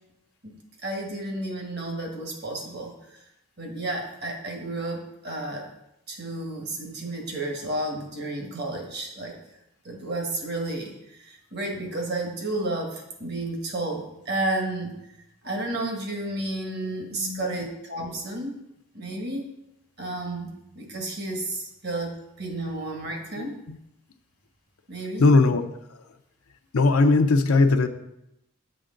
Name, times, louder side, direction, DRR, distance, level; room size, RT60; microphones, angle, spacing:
voice 1, 0.8-3.2 3.6-5.7 6.1-9.4 9.8-15.0 15.4-18.6 18.9-19.4 20.0-23.6 24.9-25.3, right 2 dB, 50° right, 1 dB, 1.4 m, -32 dB
voice 2, 17.1-17.6 23.4-23.8 25.2-25.6 26.7-27.9, left 3 dB, 90° left, 6 dB, 0.5 m, -20 dB
7.7 x 5.8 x 3.8 m, 0.85 s
head